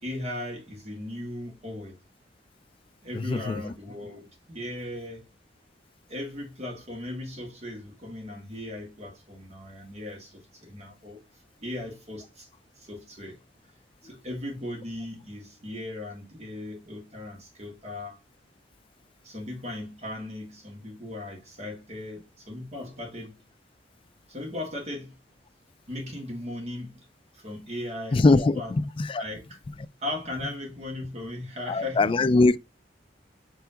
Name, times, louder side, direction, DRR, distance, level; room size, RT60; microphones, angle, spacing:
voice 1, 0.0-2.0 3.0-5.3 6.1-11.2 11.6-12.5 12.8-13.4 14.0-18.2 19.2-23.4 24.3-25.2 25.9-27.1 27.3-28.7 29.2-29.6 30.0-32.5, left 1 dB, 40° right, 1.9 m, -37 dB
voice 2, 3.1-3.6 28.1-29.2 31.7-32.6, left 3 dB, 30° left, 0.4 m, -22 dB
5.5 x 3.4 x 2.8 m
head